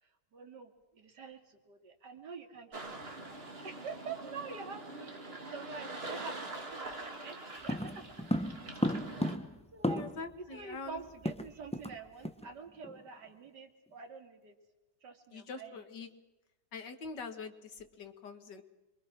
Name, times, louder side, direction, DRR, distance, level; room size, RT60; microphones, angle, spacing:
voice 1, 0.0-5.1 5.5-7.4 7.6-8.3 9.7-10.0 10.4-14.6 15.0-15.9, right 5 dB, 75° right, 6 dB, 2.9 m, -47 dB
sound 1, 2.7-9.4, right 2 dB, 35° right, 2.7 m, -44 dB
sound 2, 7.7-10.3 10.6-10.7 11.0-12.0 12.2-12.5 12.8-13.1, equal, 5° left, 0.7 m, -34 dB
voice 2, 10.0-11.0 15.3-16.1 16.7-18.6, left 4 dB, 85° left, 8 dB, 2.5 m, -44 dB
26.5 x 23.5 x 6.0 m, 1.0 s
omnidirectional pair, 1.8 m